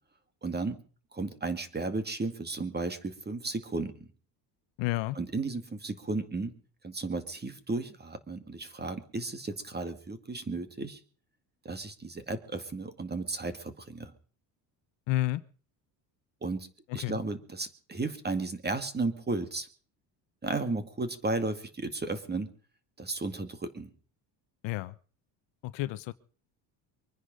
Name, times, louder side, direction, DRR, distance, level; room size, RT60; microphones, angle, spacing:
voice 1, 0.4-0.8 1.1-4.1 5.2-6.5 6.8-11.0 11.6-14.1 16.4-16.7 16.9-19.7 20.4-22.5 23.0-23.9, right 3 dB, 20° right, 2.2 m, -34 dB
voice 2, 4.8-5.2 15.1-15.4 16.9-17.2 24.6-25.0 25.6-26.1, left 18 dB, 70° left, 0.9 m, -31 dB
24.0 x 10.0 x 5.2 m
supercardioid pair, 100°, 46 cm